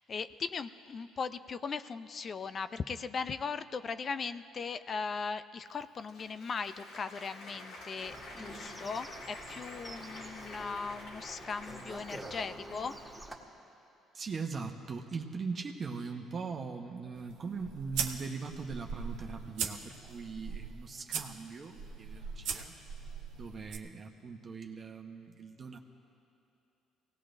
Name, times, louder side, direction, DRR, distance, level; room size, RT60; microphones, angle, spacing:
voice 1, 0.1-13.0, left 5 dB, 40° left, 12 dB, 0.4 m, -38 dB
Applause, 5.7-13.3, left 2 dB, 75° left, 2.8 m, -49 dB
sound 1, 8.0-13.4, right 1 dB, 5° left, 2.0 m, -47 dB
voice 2, 14.1-22.8 23.3-25.8, right 4 dB, 40° right, 3 dB, 1.0 m, -40 dB
sound 2, 17.1-23.8, right 6 dB, 80° right, 0.9 m, -40 dB
24.0 x 18.0 x 2.6 m, 2.7 s
cardioid pair, 95°, 0 cm